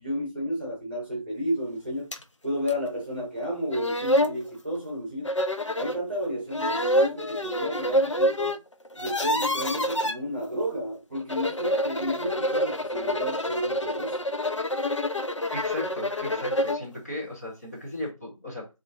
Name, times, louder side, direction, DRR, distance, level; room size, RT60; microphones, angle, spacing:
voice 1, 0.0-2.1 2.4-5.3 5.8-8.6 8.9-14.2, equal, 20° right, 1.4 m, -32 dB
sound 1, 2.1-2.2 2.7-2.8 3.4-3.5 3.7-4.4 5.2-6.0 6.5-8.6 8.8-10.1 11.1-16.9, equal, 60° left, 0.6 m, -27 dB
voice 2, 15.5-18.7, left 1 dB, 30° left, 1.7 m, -36 dB
5.5 x 3.1 x 2.8 m
figure-of-eight pair, 170°, 18 cm